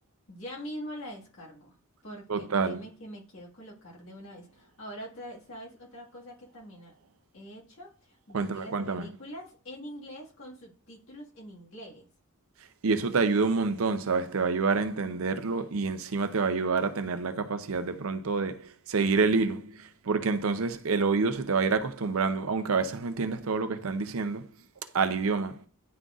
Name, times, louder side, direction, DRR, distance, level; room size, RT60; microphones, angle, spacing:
voice 1, 0.3-1.7 2.0-6.9 7.3-12.1, equal, 70° left, 1.8 m, -44 dB
voice 2, 2.3-2.8 8.3-9.1 12.8-24.5 24.9-25.6, right 4 dB, 75° right, 0.6 m, -27 dB
10.5 x 3.8 x 2.4 m
head